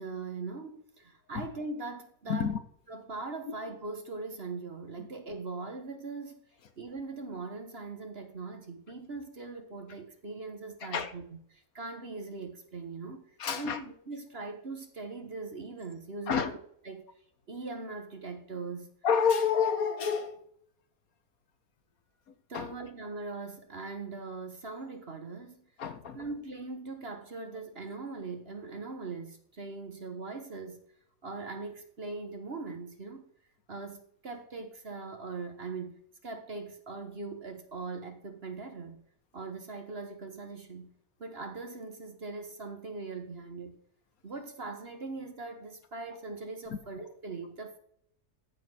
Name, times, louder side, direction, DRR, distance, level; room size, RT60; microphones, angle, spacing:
voice 1, 0.0-2.5 2.9-6.4 6.8-13.2 13.6-16.5 16.8-17.1 17.5-18.9 22.5-25.6 26.1-30.8 31.2-33.2 33.7-39.0 39.3-40.9 41.2-43.8 44.2-47.8, right 3 dB, 40° right, 1.4 m, -41 dB
voice 2, 2.3-2.6 10.8-11.1 13.4-13.8 16.3-16.5 19.0-20.5 22.5-22.7 25.8-26.3, left 6 dB, 65° left, 1.4 m, -29 dB
14.5 x 4.9 x 6.3 m
omnidirectional pair, 1.7 m